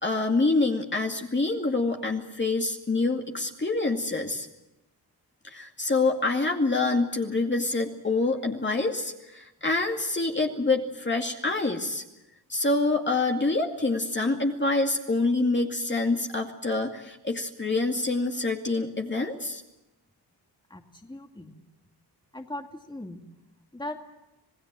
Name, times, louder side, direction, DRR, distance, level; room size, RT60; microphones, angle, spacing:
voice 1, 0.0-4.5 5.4-12.0 12.5-19.6, left 3 dB, 25° left, 2 dB, 2.3 m, -26 dB
voice 2, 20.7-21.5 22.3-23.2 23.7-24.0, left 1 dB, 10° left, 3 dB, 2.4 m, -38 dB
27.0 x 18.0 x 7.6 m, 0.97 s
cardioid pair, 80°, 42 cm